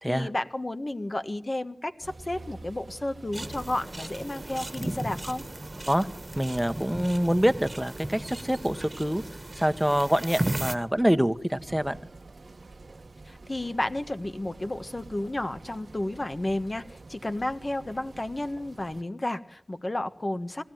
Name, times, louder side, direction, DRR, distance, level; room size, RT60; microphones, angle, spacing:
voice 1, 0.1-5.4 13.2-20.6, left 1 dB, 45° left, 9 dB, 1.5 m, -32 dB
sound 1, 2.0-19.0, right 3 dB, 80° right, 1.2 m, -48 dB
sound 2, 3.3-10.8, right 1 dB, 40° right, 1.5 m, -36 dB
voice 2, 6.3-9.2 9.5-12.0, equal, 5° right, 10 dB, 1.2 m, -25 dB
21.0 x 15.5 x 9.3 m, 0.67 s
wide cardioid pair, 40°, 0 cm